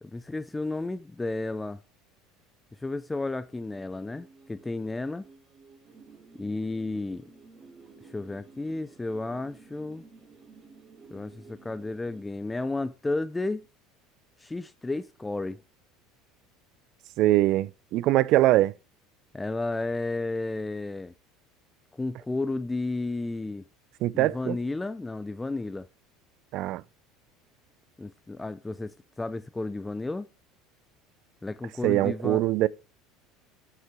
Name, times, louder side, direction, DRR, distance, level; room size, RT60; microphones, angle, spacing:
voice 1, 0.0-1.8 2.8-5.2 6.4-7.2 8.0-10.0 11.1-13.6 14.4-15.6 19.3-21.1 22.0-23.7 24.1-25.9 28.0-30.3 31.4-32.5, left 2 dB, 10° left, 0.4 m, -32 dB
sound 1, 3.5-12.2, right 4 dB, 35° right, 2.4 m, -53 dB
voice 2, 17.2-18.7 24.0-24.6 26.5-26.8 31.8-32.7, right 15 dB, 60° right, 0.4 m, -22 dB
5.9 x 5.7 x 5.9 m
supercardioid pair, 95°, 0 cm